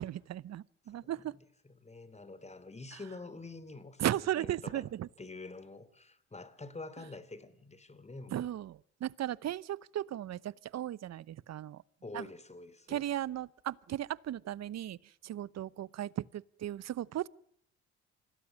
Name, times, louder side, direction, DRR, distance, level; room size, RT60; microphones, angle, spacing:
voice 1, 0.0-1.4 2.9-3.0 4.0-5.1 8.3-11.8 12.1-12.3 12.9-17.3, right 12 dB, 50° right, 0.9 m, -36 dB
voice 2, 1.8-4.8 5.2-8.5 12.0-13.0, left 3 dB, 20° left, 3.1 m, -47 dB
25.5 x 18.5 x 7.3 m
supercardioid pair, 65°, 34 cm